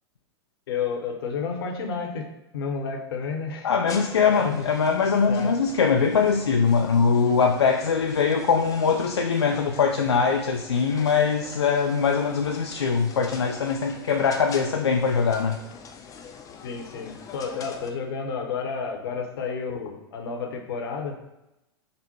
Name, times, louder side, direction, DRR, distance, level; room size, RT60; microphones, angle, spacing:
voice 1, 0.7-2.3 2.5-3.7 4.3-4.7 5.3-5.5 16.6-21.2, left 5 dB, 60° left, 2 dB, 0.9 m, -31 dB
voice 2, 3.6-15.6, left 5 dB, 80° left, 2 dB, 0.4 m, -22 dB
sound 1, 3.9-17.9, left 6 dB, 25° left, 0.5 m, -43 dB
5.2 x 2.1 x 4.3 m, 0.92 s
figure-of-eight pair, 90°, 14 cm